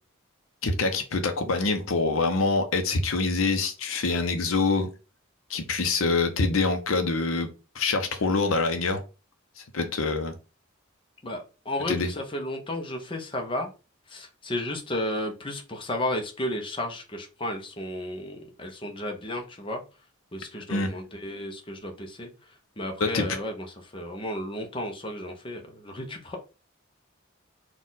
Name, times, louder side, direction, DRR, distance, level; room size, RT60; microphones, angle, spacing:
voice 1, 0.6-4.9 5.5-7.5 7.7-9.0 9.6-10.3 11.9-12.1 20.7-20.9 23.0-23.3, left 3 dB, 85° left, 0.7 m, -25 dB
voice 2, 11.2-13.7 14.1-19.8 20.3-22.3 22.8-23.7 23.9-26.4, left 1 dB, 25° left, 0.7 m, -33 dB
4.2 x 2.4 x 3.8 m
head